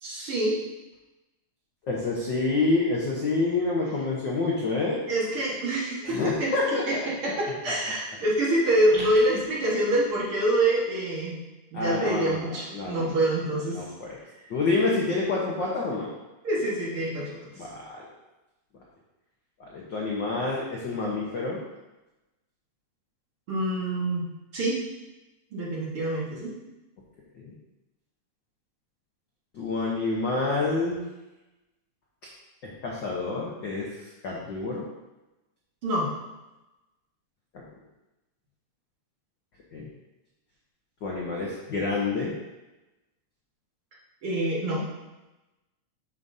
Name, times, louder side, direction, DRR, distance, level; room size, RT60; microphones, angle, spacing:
voice 1, 0.0-0.6 5.1-6.5 6.9-11.4 11.7-13.8 16.4-17.7 23.5-24.8 25.5-26.5 35.8-36.1 44.2-44.8, right 1 dB, 50° right, -6 dB, 2.2 m, -26 dB
voice 2, 1.9-5.0 6.0-7.1 11.7-13.2 13.7-14.1 14.5-16.1 17.6-18.0 19.6-21.6 27.3-27.5 29.5-31.0 32.6-33.9 34.2-34.9 37.5-37.6 39.7-39.9 41.0-42.3, left 3 dB, 60° left, -4 dB, 1.1 m, -28 dB
9.0 x 6.3 x 2.7 m, 1.0 s
omnidirectional pair, 3.4 m